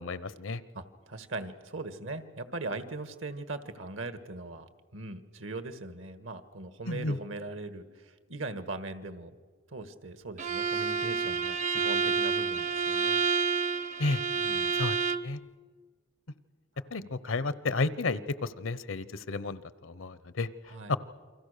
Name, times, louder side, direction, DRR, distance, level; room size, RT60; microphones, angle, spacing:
voice 1, 0.0-0.6 6.9-7.2 14.0-14.2 14.7-15.0 15.2-15.4 16.9-20.5 20.9-21.0, left 3 dB, 80° left, 16 dB, 0.9 m, -31 dB
voice 2, 0.7-9.4 9.7-13.3 14.3-14.8 16.9-17.1 20.7-21.0, right 2 dB, 75° right, 11 dB, 1.7 m, -40 dB
Bowed string instrument, 10.4-15.3, right 5 dB, 40° right, 0.8 m, -29 dB
29.0 x 24.0 x 6.7 m, 1.5 s
head